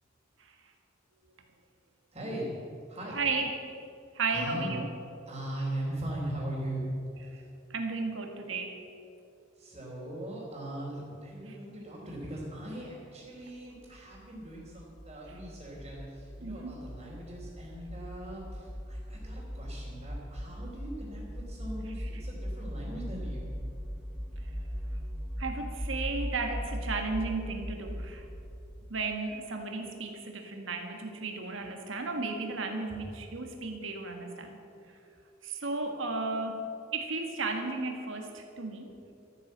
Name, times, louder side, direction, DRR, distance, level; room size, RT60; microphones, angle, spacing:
voice 1, 2.1-2.5 2.9-3.2 4.3-4.8 5.3-6.9 7.3-7.4 9.5-23.5, right 1 dB, 30° right, -8 dB, 3.2 m, -40 dB
voice 2, 3.1-3.5 4.1-4.9 7.3-7.4 7.7-8.8 11.5-11.6 16.4-16.8 24.4-24.5 25.4-28.3 28.9-34.6 35.4-38.9, right 3 dB, 70° right, 3 dB, 1.6 m, -34 dB
sound 1, 13.7-29.0, equal, 5° right, 0.7 m, -39 dB
13.5 x 9.7 x 7.4 m, 2.6 s
head